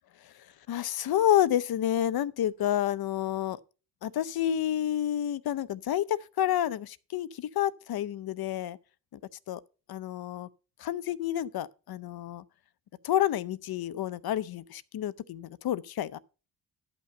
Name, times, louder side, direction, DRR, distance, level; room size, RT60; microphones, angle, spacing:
voice 1, 0.7-3.6 4.0-8.8 9.1-9.2 9.5-9.6 9.9-10.5 10.8-12.4 13.0-16.2, left 11 dB, 65° left, 0.7 m, -29 dB
11.0 x 5.9 x 5.4 m
cardioid pair, 75°, 39 cm